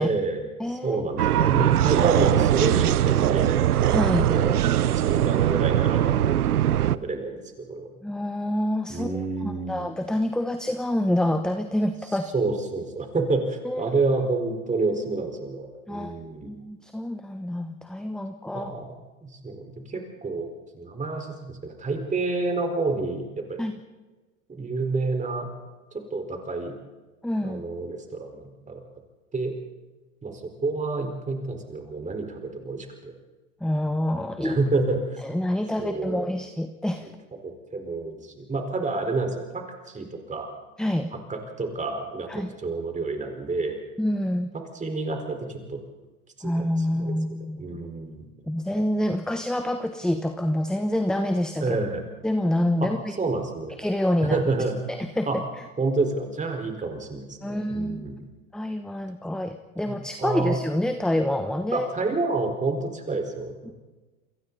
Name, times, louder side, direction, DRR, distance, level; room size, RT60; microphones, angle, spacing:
voice 1, 0.0-3.6 4.2-7.9 8.9-9.9 12.3-16.5 18.5-18.9 19.2-20.5 20.7-23.6 24.5-25.5 25.9-26.7 27.4-28.8 29.3-29.5 30.2-33.1 34.4-35.2 35.8-36.4 37.0-37.1 37.4-40.5 41.1-43.8 44.7-45.8 46.4-46.6 46.9-47.1 47.6-48.3 51.6-52.0 52.8-52.9 53.2-53.8 54.3-54.8 55.3-55.4 55.8-58.3 59.9-60.6 61.7-63.7, right 3 dB, 15° right, 4 dB, 4.7 m, -29 dB
voice 2, 0.6-1.0 1.4-1.5 3.9-4.3 8.0-12.3 13.6-13.9 15.9-16.2 16.4-18.7 23.6-23.7 27.2-27.6 33.6-34.6 35.2-37.1 40.8-41.1 42.3-42.5 44.0-44.5 46.4-47.7 48.5-51.8 52.2-53.1 53.8-54.4 54.9-55.4 57.4-58.0 58.5-61.9, left 1 dB, ahead, 7 dB, 1.0 m, -27 dB
sound 1, 1.2-7.0, right 11 dB, 90° right, 0.8 m, -21 dB
29.0 x 22.5 x 4.2 m, 1.2 s
hypercardioid pair, 105°, 44 cm